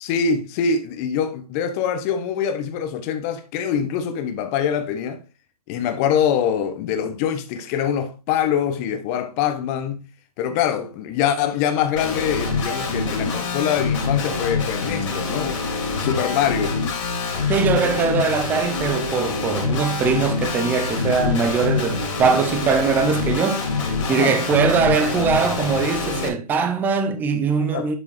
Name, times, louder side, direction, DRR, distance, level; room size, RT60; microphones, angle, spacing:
voice 1, 0.0-5.2 5.7-10.0 10.4-15.6 16.0-16.8 24.1-24.4 27.7-27.9, left 8 dB, 25° left, 1.0 m, -24 dB
Guitar, 12.0-26.3, left 4 dB, 50° left, 3.0 m, -25 dB
voice 2, 17.5-23.6 24.1-28.0, right 5 dB, 10° right, 0.6 m, -21 dB
11.0 x 4.9 x 3.2 m
figure-of-eight pair, 140°, 20 cm